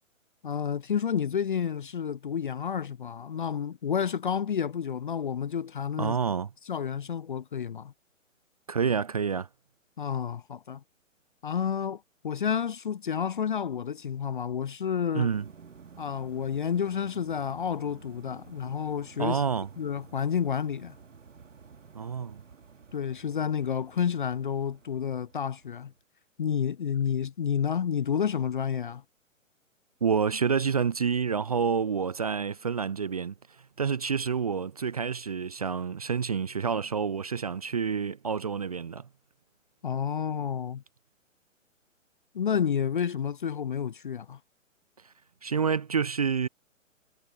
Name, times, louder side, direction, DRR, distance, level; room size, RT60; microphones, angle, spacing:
voice 1, 0.4-6.2 6.7-7.9 10.0-10.8 11.4-15.3 16.0-19.4 19.8-20.9 22.9-25.9 26.4-29.0 39.8-40.8 42.3-44.4, left 8 dB, 40° left, 0.4 m, -30 dB
voice 2, 6.0-6.5 8.7-9.5 15.1-15.5 19.2-19.7 21.9-22.4 30.0-33.3 33.8-39.0 45.4-46.5, right 6 dB, 30° right, 0.4 m, -28 dB
sound 1, 15.3-26.0, right 5 dB, 65° right, 2.2 m, -52 dB
figure-of-eight pair, 125°, 40 cm